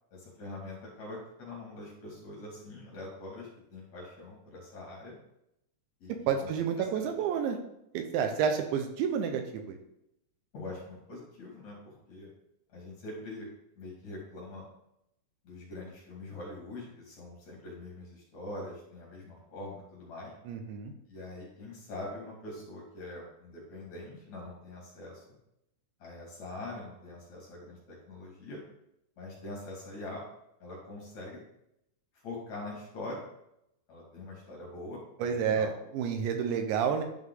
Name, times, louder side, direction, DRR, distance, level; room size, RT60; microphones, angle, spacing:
voice 1, 0.1-5.2 6.0-6.5 6.8-7.1 10.5-12.3 12.7-13.5 13.8-14.7 15.4-20.3 21.1-25.4 26.0-28.6 29.2-30.2 30.6-31.4 32.2-33.2 33.9-35.7, left 2 dB, 45° left, -3 dB, 3.1 m, -43 dB
voice 2, 6.3-7.6 7.9-9.8 20.5-20.9 35.2-37.0, right 7 dB, 75° right, 5 dB, 3.2 m, -30 dB
12.0 x 5.6 x 3.9 m, 0.80 s
omnidirectional pair, 5.5 m